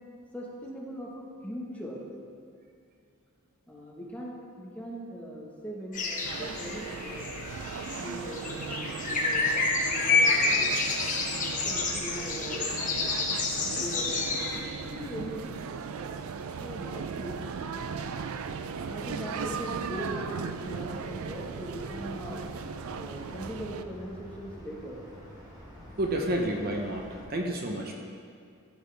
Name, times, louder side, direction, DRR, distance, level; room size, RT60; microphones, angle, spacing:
voice 1, 0.3-2.0 3.7-7.3 8.0-9.4 9.9-10.7 11.6-13.2 13.6-15.7 16.6-17.4 17.7-17.8 18.8-22.6 23.0-25.0, equal, 5° left, -3 dB, 1.2 m, -40 dB
sound 1, 5.9-14.6, left 3 dB, 35° left, 1.2 m, -29 dB
sound 2, 6.2-23.8, right 5 dB, 70° right, 0.4 m, -37 dB
sound 3, 20.6-27.2, equal, 15° right, 1.8 m, -48 dB
voice 2, 26.0-27.9, right 1 dB, 45° right, 1 dB, 0.8 m, -30 dB
14.0 x 7.3 x 3.4 m, 2.3 s
head